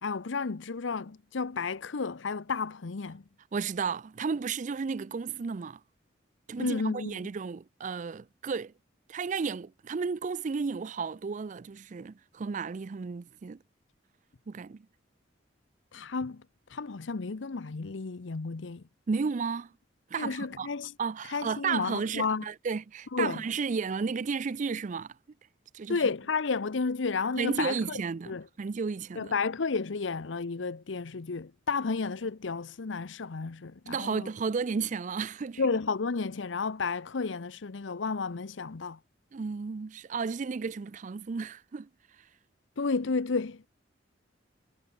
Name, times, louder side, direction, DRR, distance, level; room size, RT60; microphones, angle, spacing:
voice 1, 0.0-3.2 6.6-7.2 15.9-16.4 16.7-18.8 20.2-20.9 21.3-22.5 23.1-23.4 25.9-28.0 28.3-28.4 29.2-34.3 35.6-39.0 42.8-43.7, left 4 dB, 85° left, 0.7 m, -32 dB
voice 2, 3.5-5.8 6.5-8.7 9.1-13.6 14.5-14.9 19.1-19.7 20.1-20.7 21.0-25.1 25.7-26.0 27.4-29.3 33.9-35.6 39.3-41.9, right 5 dB, 40° right, 0.4 m, -33 dB
head